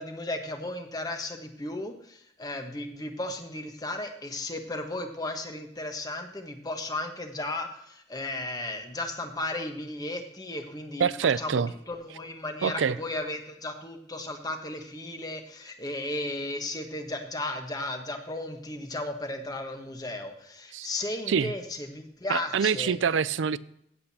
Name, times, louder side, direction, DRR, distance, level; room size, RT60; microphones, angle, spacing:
voice 1, 0.0-22.9, left 2 dB, 20° left, 1.2 m, -35 dB
voice 2, 11.0-11.7 12.6-13.0 20.7-20.9 21.3-21.5 22.3-23.6, right 6 dB, 90° right, 0.4 m, -25 dB
16.5 x 7.9 x 2.8 m
head